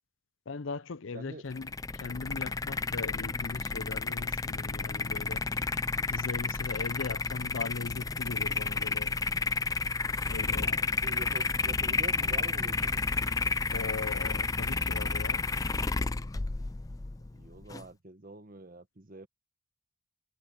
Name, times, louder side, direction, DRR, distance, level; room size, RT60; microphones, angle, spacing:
voice 1, 0.5-5.5 6.1-9.2 10.3-11.0 13.7-15.4, left 4 dB, 70° left, 0.6 m, -39 dB
voice 2, 1.1-1.4 10.6-10.7 11.0-13.0 17.3-19.3, right 2 dB, 45° right, 1.3 m, -45 dB
sound 1, 1.5-17.8, left 4 dB, 15° left, 0.4 m, -31 dB
head